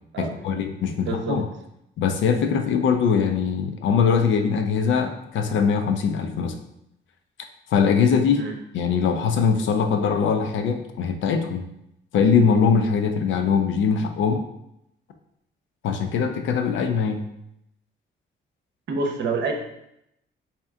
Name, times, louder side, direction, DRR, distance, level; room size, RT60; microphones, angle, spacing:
voice 1, 0.2-1.5 2.0-6.6 7.7-8.4 8.7-11.6 12.1-14.4 15.8-17.2, left 6 dB, 75° left, 6 dB, 0.5 m, -22 dB
voice 2, 1.0-1.4 8.3-8.5 18.9-19.5, right 3 dB, 65° right, 3 dB, 0.8 m, -27 dB
3.3 x 2.9 x 3.6 m, 0.81 s
cardioid pair, 90°, 20 cm